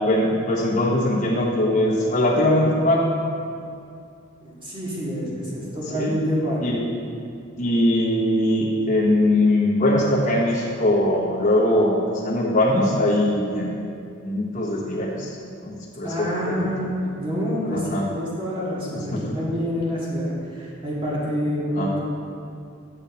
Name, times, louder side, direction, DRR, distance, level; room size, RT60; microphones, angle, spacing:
voice 1, 0.1-3.1 5.9-6.1 6.6-6.8 7.6-13.9 14.2-15.3 15.6-16.7 17.7-18.0 19.2-19.4 21.8-21.9, left 1 dB, 40° left, -5 dB, 1.1 m, -21 dB
voice 2, 4.4-6.7 16.0-22.0, equal, 25° right, -7 dB, 1.9 m, -27 dB
8.9 x 5.9 x 4.1 m, 2.4 s
head